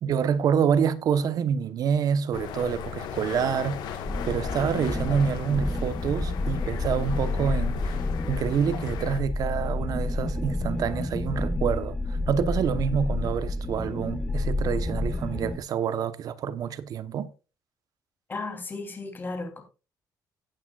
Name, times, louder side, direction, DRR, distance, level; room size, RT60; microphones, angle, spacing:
voice 1, 0.0-7.9 8.3-17.3, right 7 dB, 60° right, 1.0 m, -27 dB
sound 1, 2.3-9.2, left 8 dB, 90° left, 1.5 m, -36 dB
sound 2, 4.0-15.6, left 2 dB, 10° left, 0.9 m, -30 dB
voice 2, 18.3-19.6, left 3 dB, 30° left, 3.1 m, -34 dB
16.5 x 8.7 x 2.4 m
cardioid pair, 120°, 7 cm